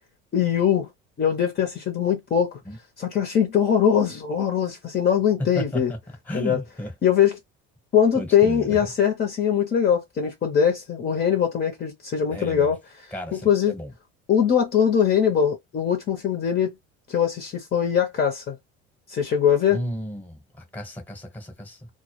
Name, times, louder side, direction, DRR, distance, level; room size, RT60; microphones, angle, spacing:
voice 1, 0.3-0.9 1.2-2.6 3.0-5.9 6.3-6.6 7.0-7.4 7.9-12.8 13.3-13.7 14.3-16.7 17.1-18.6 19.1-19.8, left 8 dB, 35° left, 0.6 m, -21 dB
voice 2, 5.5-6.0 6.3-6.9 8.1-8.9 12.3-12.7 13.1-13.9 19.7-21.9, equal, 5° left, 0.9 m, -34 dB
2.1 x 2.1 x 3.0 m
cardioid pair, 120°, 29 cm